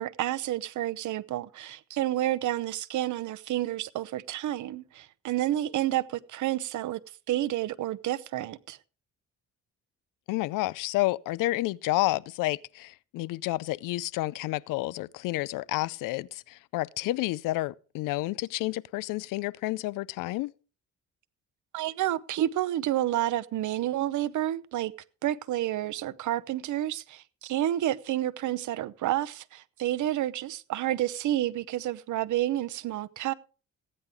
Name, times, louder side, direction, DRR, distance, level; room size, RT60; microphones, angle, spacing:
voice 1, 0.0-7.0 7.3-8.8 21.7-24.9 25.2-33.3, right 13 dB, 70° right, 0.8 m, -30 dB
voice 2, 10.3-20.5, left 18 dB, 90° left, 0.5 m, -30 dB
15.5 x 9.9 x 3.5 m
cardioid pair, 100°, 31 cm